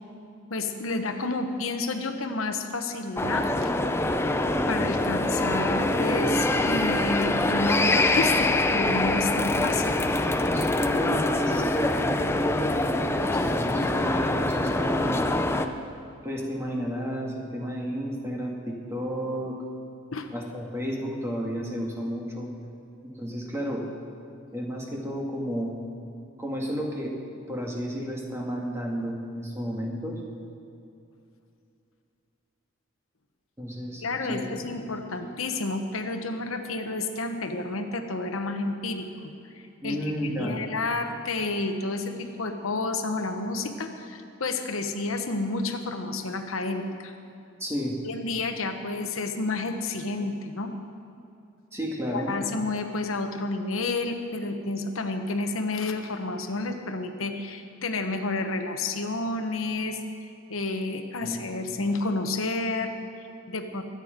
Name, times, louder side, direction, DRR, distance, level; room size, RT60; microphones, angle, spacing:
voice 1, 0.5-3.7 4.7-10.0 20.1-20.3 34.0-47.1 48.0-50.7 52.1-63.8, left 3 dB, 90° left, 6 dB, 1.1 m, -30 dB
sound 1, 3.2-15.7, left 2 dB, 10° left, 0.5 m, -24 dB
voice 2, 10.5-15.3 16.2-19.6 20.3-22.5 23.0-23.9 24.5-25.7 26.4-27.1 27.5-30.2 33.6-34.7 39.8-40.6 47.6-48.0 51.7-52.3 61.2-61.4, equal, 15° right, -1 dB, 2.0 m, -32 dB
22.5 x 9.1 x 5.2 m, 2.7 s
head